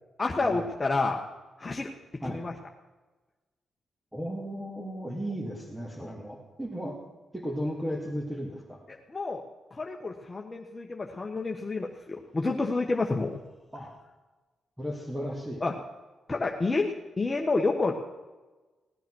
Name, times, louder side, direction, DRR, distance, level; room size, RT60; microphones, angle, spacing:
voice 1, 0.2-1.2 1.6-1.9 2.2-2.5 6.0-6.1 9.1-9.4 9.7-13.4 15.6-15.7 16.3-17.9, left 3 dB, 30° left, 1 dB, 1.3 m, -29 dB
voice 2, 4.1-7.0 7.3-8.8 13.7-13.9 14.8-15.6, equal, 10° right, -2 dB, 2.3 m, -35 dB
17.5 x 9.2 x 6.2 m, 1.2 s
cardioid pair, 65°, 0 cm